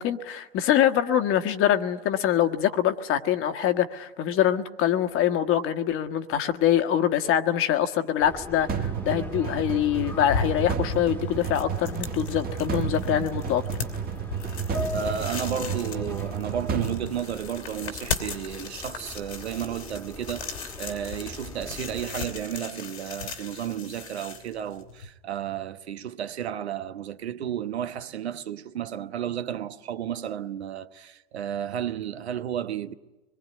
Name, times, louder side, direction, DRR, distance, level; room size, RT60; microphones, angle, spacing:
voice 1, 0.0-13.6, left 10 dB, 40° left, 1.5 m, -24 dB
Subway metro underground, 8.2-22.0, left 2 dB, 5° left, 1.6 m, -40 dB
sound 1, 8.7-17.9, right 7 dB, 30° right, 1.8 m, -32 dB
sound 2, 9.9-25.1, left 5 dB, 85° left, 3.2 m, -37 dB
voice 2, 14.9-32.9, right 10 dB, 80° right, 1.1 m, -33 dB
25.0 x 21.5 x 9.7 m
hypercardioid pair, 95°, 32 cm